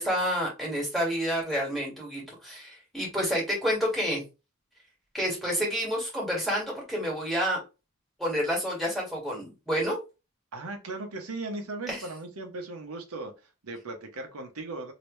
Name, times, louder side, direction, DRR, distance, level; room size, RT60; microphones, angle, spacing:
voice 1, 0.0-4.2 5.1-7.6 8.2-10.0 11.9-12.0, equal, ahead, 1.8 m, -29 dB
voice 2, 10.5-14.9, right 2 dB, 70° right, 0.9 m, -38 dB
3.2 x 2.9 x 3.1 m
head